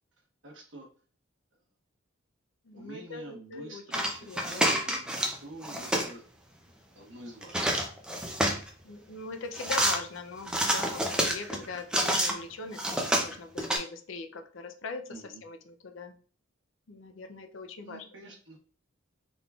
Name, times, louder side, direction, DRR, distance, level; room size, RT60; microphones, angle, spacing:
voice 1, 0.4-0.9 2.7-6.2 6.9-7.6 15.1-15.4 17.8-18.6, right 1 dB, 60° right, 0 dB, 1.1 m, -47 dB
voice 2, 2.6-4.7 8.8-16.1 16.9-18.2, left 4 dB, 65° left, 6 dB, 0.5 m, -41 dB
sound 1, 3.9-5.4 5.6-6.1 7.4-8.7 9.5-10.0 10.5-12.3 12.7-13.8, right 1 dB, 5° right, 0.4 m, -28 dB
3.8 x 3.4 x 2.3 m, 0.42 s
head